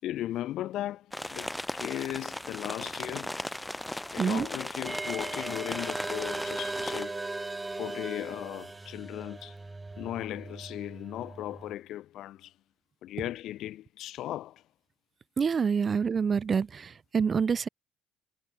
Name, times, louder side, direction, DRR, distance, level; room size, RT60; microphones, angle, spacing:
voice 1, 0.0-3.4 4.1-7.2 7.8-9.6 10.0-12.5 13.0-14.6, left 13 dB, 65° left, 5.0 m, -37 dB
sound 1, 1.1-7.0, left 1 dB, 10° left, 2.1 m, -37 dB
sound 2, 4.8-11.7, right 3 dB, 20° right, 1.5 m, -38 dB
voice 2, 15.4-17.7, right 6 dB, 40° right, 0.9 m, -27 dB
supercardioid pair, 70°, 0 cm